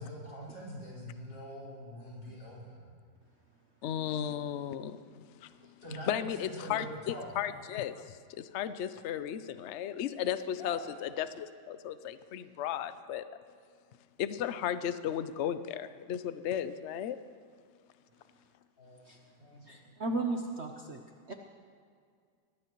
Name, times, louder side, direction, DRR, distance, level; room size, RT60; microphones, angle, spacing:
voice 1, 0.0-2.9 4.3-4.4 5.8-7.3 10.5-10.8 18.8-19.0 19.4-19.8, equal, 70° left, -6 dB, 5.6 m, -44 dB
voice 2, 3.8-5.5 6.1-13.2 14.2-17.2, left 10 dB, 85° left, 12 dB, 0.6 m, -35 dB
voice 3, 19.7-21.0 21.3-21.4, right 2 dB, 50° right, 3 dB, 0.9 m, -35 dB
24.0 x 18.5 x 3.1 m, 2.1 s
omnidirectional pair, 2.0 m